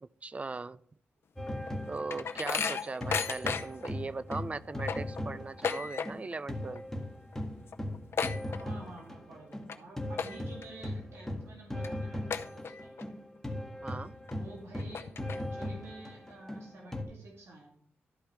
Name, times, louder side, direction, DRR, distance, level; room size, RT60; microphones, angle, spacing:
voice 1, 0.0-0.8 1.9-6.8 13.8-14.2, right 3 dB, 30° right, 18 dB, 0.4 m, -39 dB
sound 1, 1.4-6.2 6.5-17.0, left 1 dB, 10° left, 1.5 m, -38 dB
sound 2, 1.5-3.9 4.3-4.4 4.7-6.4 6.7-7.0 7.3-7.4 7.7-9.1 9.5-9.8 10.1-10.6 11.1-11.2 11.8-11.9 12.3-13.0 13.5-13.6 14.3-14.4 14.8-15.7, left 6 dB, 60° left, 0.6 m, -35 dB
voice 2, 8.5-12.9 14.3-17.7, right 2 dB, 75° right, -2 dB, 2.2 m, -50 dB
12.5 x 5.4 x 4.5 m, 0.64 s
cardioid pair, 75°, 5 cm